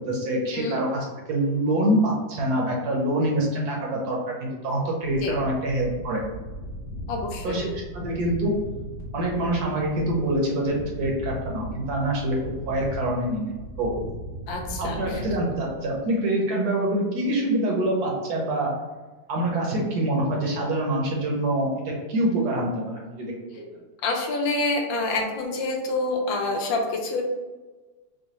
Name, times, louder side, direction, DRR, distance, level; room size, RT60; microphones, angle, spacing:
voice 1, 0.1-6.2 7.4-8.5 9.1-13.5 13.8-13.9 14.8-18.7 19.3-23.6, right 1 dB, 65° right, -1 dB, 1.1 m, -25 dB
sound 1, 5.0-16.1, equal, 60° left, 1.3 m, -37 dB
voice 2, 7.1-7.6 14.5-15.2 24.0-27.2, left 2 dB, 80° left, 2 dB, 1.4 m, -27 dB
4.8 x 2.3 x 3.0 m, 1.2 s
omnidirectional pair, 2.1 m